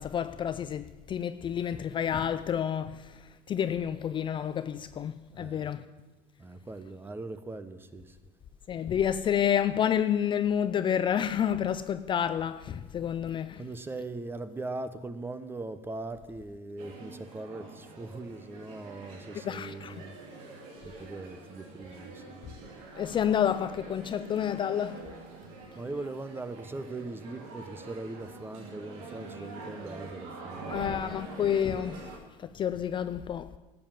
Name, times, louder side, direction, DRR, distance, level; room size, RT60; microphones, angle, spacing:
voice 1, 0.0-5.8 8.7-13.7 19.4-20.0 23.0-25.1 26.0-26.1 30.7-33.5, left 9 dB, 30° left, 0.5 m, -29 dB
voice 2, 5.3-5.7 6.4-8.2 13.6-20.5 20.8-22.4 25.8-31.1, right 2 dB, 15° right, 0.9 m, -40 dB
sound 1, 16.8-32.2, right 3 dB, 70° right, 2.8 m, -45 dB
12.0 x 7.7 x 7.5 m
supercardioid pair, 115°, 16 cm